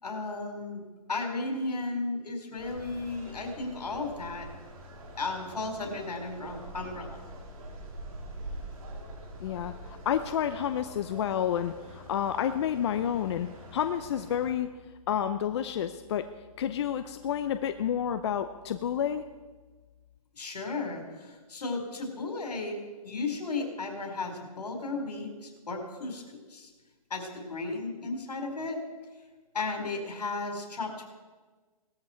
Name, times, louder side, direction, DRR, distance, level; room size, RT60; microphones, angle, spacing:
voice 1, 0.0-0.8 1.1-4.5 5.2-7.2 20.3-26.2 26.5-26.7 27.1-28.8 29.5-31.1, left 3 dB, 85° left, 3 dB, 4.5 m, -34 dB
sound 1, 2.6-14.5, right 1 dB, 60° right, 4.6 m, -45 dB
voice 2, 9.4-14.7 15.1-16.3 16.6-19.3, left 9 dB, 45° left, 9 dB, 0.7 m, -30 dB
18.5 x 13.5 x 4.5 m, 1.3 s
hypercardioid pair, 150°, 20 cm